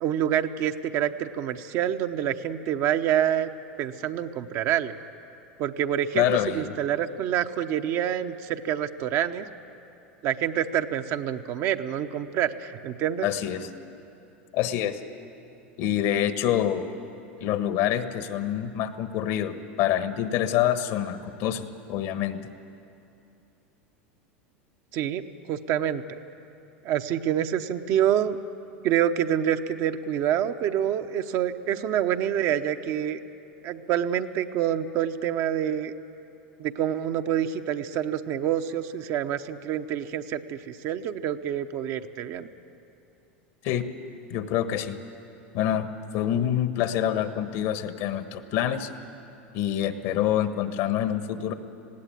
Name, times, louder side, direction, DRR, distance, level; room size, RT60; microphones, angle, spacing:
voice 1, 0.0-3.5 3.8-4.9 5.6-9.5 10.2-13.3 24.9-25.2 25.5-26.0 26.8-28.4 28.8-33.2 33.6-35.9 36.6-42.5, right 10 dB, 50° right, 7 dB, 0.9 m, -27 dB
voice 2, 6.1-6.7 13.2-13.7 14.5-15.0 15.8-16.9 17.4-22.4 43.6-43.9 44.3-45.0 45.5-48.9 49.5-51.5, left 10 dB, 60° left, 10 dB, 1.3 m, -26 dB
19.5 x 16.5 x 9.2 m, 2.8 s
hypercardioid pair, 95°, 6 cm